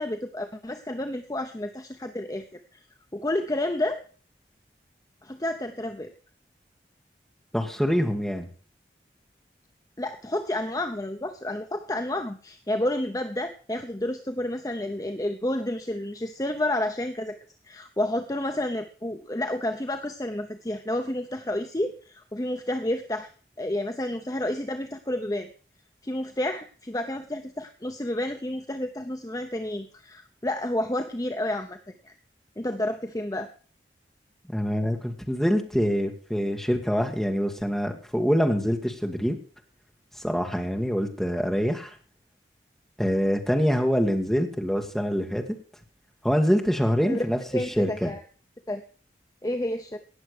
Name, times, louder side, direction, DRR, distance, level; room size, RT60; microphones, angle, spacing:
voice 1, 0.0-2.8 3.1-4.0 5.2-6.1 10.0-17.4 17.6-23.3 23.6-25.5 26.0-31.8 32.0-32.1 32.6-33.5 47.0-47.3 47.5-48.2 48.7-48.8 49.4-50.0, left 1 dB, 20° left, 6 dB, 0.7 m, -30 dB
voice 2, 7.5-8.5 34.5-39.4 40.2-41.9 43.0-45.4 46.2-47.4 47.8-48.1, equal, ahead, 2 dB, 1.9 m, -25 dB
18.0 x 7.0 x 6.6 m, 0.41 s
head